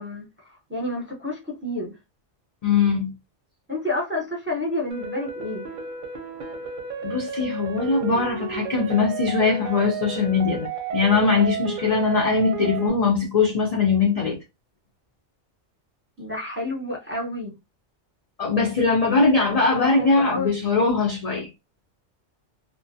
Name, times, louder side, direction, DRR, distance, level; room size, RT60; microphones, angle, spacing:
voice 1, 0.0-1.9 3.7-5.7 16.2-17.5 19.7-20.5, left 1 dB, 15° right, 0.6 m, -29 dB
voice 2, 2.6-3.1 7.0-14.4 18.4-21.5, left 4 dB, 55° left, 0.4 m, -21 dB
sound 1, 4.9-12.9, right 6 dB, 55° right, 0.6 m, -32 dB
2.3 x 2.2 x 2.6 m
omnidirectional pair, 1.2 m